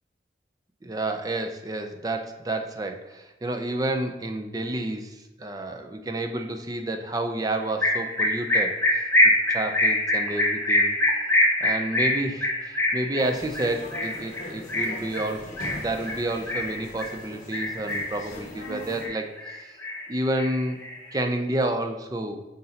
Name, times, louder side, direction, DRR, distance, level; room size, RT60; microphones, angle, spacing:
voice 1, 0.8-9.0 9.5-11.0 11.6-19.8 20.1-20.8 21.1-22.4, right 1 dB, 20° right, 6 dB, 0.5 m, -30 dB
sound 1, 7.8-17.1 17.5-18.2 18.6-19.5 19.8-21.1, left 1 dB, 15° left, 1.0 m, -24 dB
sound 2, 13.2-19.1, left 1 dB, 45° left, 1.6 m, -41 dB
7.9 x 5.3 x 2.8 m, 1.0 s
head